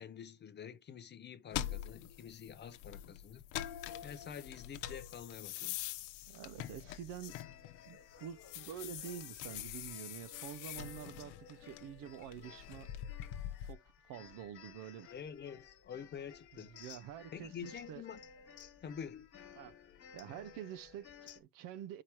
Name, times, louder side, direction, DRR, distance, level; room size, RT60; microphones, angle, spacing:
voice 1, 0.0-3.4 4.0-5.8 15.1-16.7 17.3-18.2 18.8-19.3, left 7 dB, 25° left, 0.5 m, -47 dB
sound 1, 1.5-7.9 8.3-13.7, left 12 dB, 70° left, 0.9 m, -44 dB
voice 2, 6.3-7.4 7.8-12.9 13.6-15.1 16.7-18.0 19.6-19.8 20.1-22.0, right 10 dB, 50° right, 0.5 m, -47 dB
sound 2, 7.2-21.4, left 8 dB, 40° left, 1.6 m, -57 dB
10.0 x 4.8 x 2.9 m
cardioid pair, 155°, 45 cm